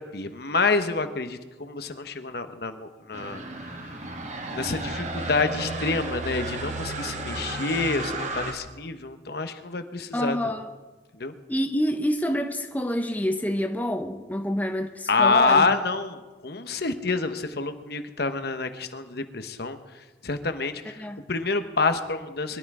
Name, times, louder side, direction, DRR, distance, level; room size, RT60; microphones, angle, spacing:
voice 1, 0.0-3.7 4.5-10.4 11.1-11.3 15.1-22.6, left 4 dB, 55° left, 8 dB, 1.1 m, -27 dB
sound 1, 3.1-8.5, right 2 dB, 40° right, 1.7 m, -33 dB
voice 2, 10.1-10.7 11.5-15.8 21.0-21.2, equal, 10° left, 6 dB, 0.7 m, -27 dB
23.0 x 12.5 x 4.9 m, 1.2 s
head